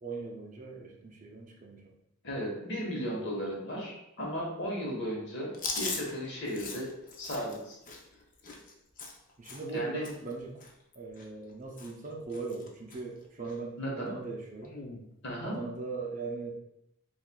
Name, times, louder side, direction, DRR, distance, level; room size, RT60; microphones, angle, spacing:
voice 1, 0.0-1.9 9.4-10.6 11.0-14.8 15.4-16.5, right 3 dB, 35° right, 0 dB, 0.5 m, -39 dB
voice 2, 2.2-6.9 7.2-7.8 9.7-10.0 13.8-14.1 15.2-15.6, equal, 50° left, -2 dB, 1.1 m, -35 dB
Chewing mastication, 5.5-9.8 10.0-10.3 10.6-11.5 11.8-12.1 12.3-13.0 13.4-13.6 14.6-15.0, left 4 dB, 35° left, 0.5 m, -40 dB
6.9 x 2.4 x 2.2 m, 0.82 s
head